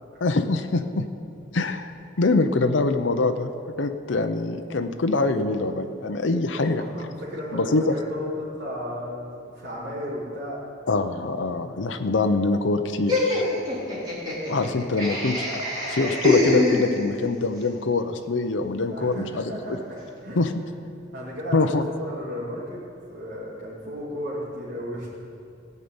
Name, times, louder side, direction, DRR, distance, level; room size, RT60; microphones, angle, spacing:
voice 1, 0.2-1.1 1.5-1.9 2.2-3.5 3.8-6.8 7.5-7.9 10.9-13.4 14.5-15.6 15.9-19.5 20.4-20.5 21.5-21.8, left 3 dB, 70° left, 7 dB, 0.7 m, -24 dB
voice 2, 6.5-10.6 13.5-13.8 18.9-20.4 21.1-22.8 23.1-25.1, equal, 60° right, -9 dB, 2.9 m, -34 dB
Laughter, 13.1-17.3, left 2 dB, 25° right, 3.2 m, -25 dB
16.5 x 5.5 x 8.8 m, 2.6 s
head